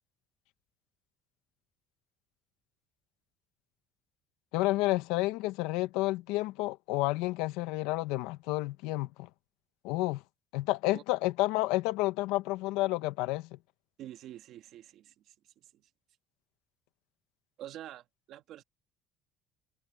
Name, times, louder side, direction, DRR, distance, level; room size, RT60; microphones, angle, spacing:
voice 1, 4.5-9.3 9.8-10.2 10.5-13.6, left 19 dB, 90° left, 1.1 m, -30 dB
voice 2, 14.0-15.8 17.6-18.6, right 12 dB, 60° right, 2.0 m, -47 dB
cardioid pair, 120°, 0 cm